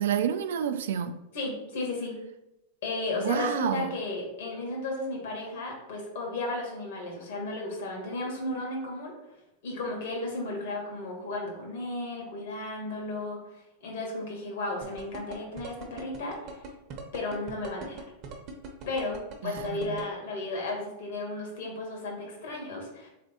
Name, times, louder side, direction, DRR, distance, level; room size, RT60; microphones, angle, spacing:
voice 1, 0.0-1.2 3.2-3.9 19.4-20.0, right 9 dB, 85° right, 9 dB, 0.3 m, -29 dB
voice 2, 1.3-2.1 2.8-9.1 9.6-13.4 13.8-16.7 17.1-18.0 18.9-23.1, left 2 dB, 75° left, -1 dB, 1.6 m, -34 dB
sound 1, 14.8-20.0, right 5 dB, 40° right, 0.7 m, -41 dB
3.4 x 3.3 x 4.2 m, 0.92 s
supercardioid pair, 145°, 0 cm